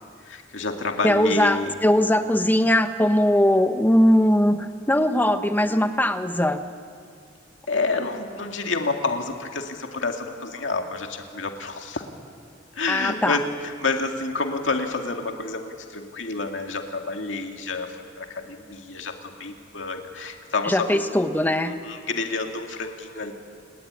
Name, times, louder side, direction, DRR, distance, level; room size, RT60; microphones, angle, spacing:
voice 1, 0.2-1.8 7.7-12.1 12.8-21.0 21.7-23.3, left 3 dB, 80° left, 3 dB, 2.2 m, -29 dB
voice 2, 1.0-6.6 12.9-13.4 20.7-21.7, left 1 dB, 10° left, 8 dB, 1.1 m, -20 dB
29.5 x 20.0 x 9.6 m, 2.2 s
head